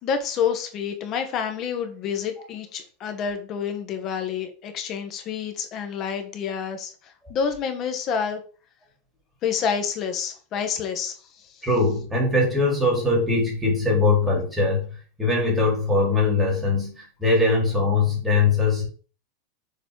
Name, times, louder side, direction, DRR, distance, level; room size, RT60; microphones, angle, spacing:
voice 1, 0.0-8.4 9.4-11.7, left 7 dB, 35° left, 6 dB, 1.3 m, -28 dB
voice 2, 11.6-18.9, left 3 dB, 5° right, -3 dB, 3.2 m, -21 dB
6.9 x 4.2 x 4.8 m, 0.40 s
supercardioid pair, 155°, 0 cm